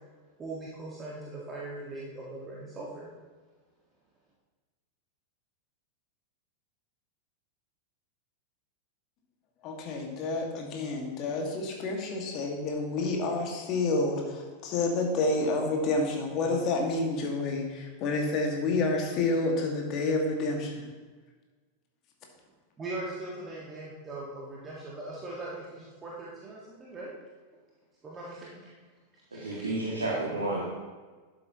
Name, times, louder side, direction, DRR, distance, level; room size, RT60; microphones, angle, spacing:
voice 1, 0.4-3.1 22.8-27.1 28.0-28.7 29.3-29.7, right 2 dB, 20° right, -5 dB, 1.6 m, -40 dB
voice 2, 9.6-20.9, left 3 dB, 35° left, 1 dB, 1.8 m, -29 dB
voice 3, 29.3-30.6, right 2 dB, 75° right, -6 dB, 2.0 m, -31 dB
12.0 x 7.8 x 2.9 m, 1.4 s
figure-of-eight pair, 90°, 0 cm